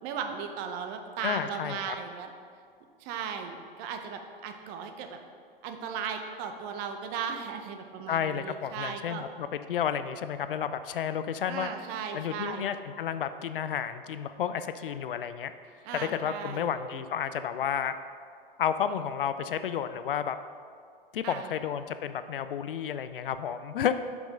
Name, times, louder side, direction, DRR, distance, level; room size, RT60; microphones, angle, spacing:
voice 1, 0.0-2.3 3.0-5.2 5.6-9.3 11.5-12.7 15.8-16.7 21.2-21.5, right 6 dB, 30° right, 5 dB, 0.7 m, -36 dB
voice 2, 1.2-2.0 8.1-11.7 12.1-15.5 15.9-18.0 18.6-20.4 21.1-23.9, left 8 dB, 65° left, 11 dB, 0.4 m, -31 dB
5.9 x 5.3 x 5.1 m, 2.2 s
figure-of-eight pair, 100°, 30 cm